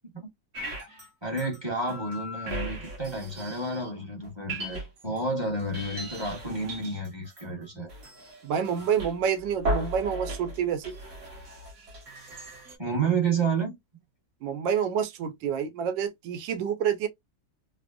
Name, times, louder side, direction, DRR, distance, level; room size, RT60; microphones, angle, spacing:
sound 1, 0.5-1.1 1.4-3.9 4.2-5.2 5.6-12.8, right 1 dB, 50° right, 1.2 m, -37 dB
voice 1, 1.2-7.9 12.8-13.7, right 3 dB, 20° right, 0.8 m, -30 dB
voice 2, 8.4-10.9 14.4-17.1, right 8 dB, 85° right, 1.3 m, -28 dB
3.4 x 2.0 x 2.3 m
omnidirectional pair, 2.0 m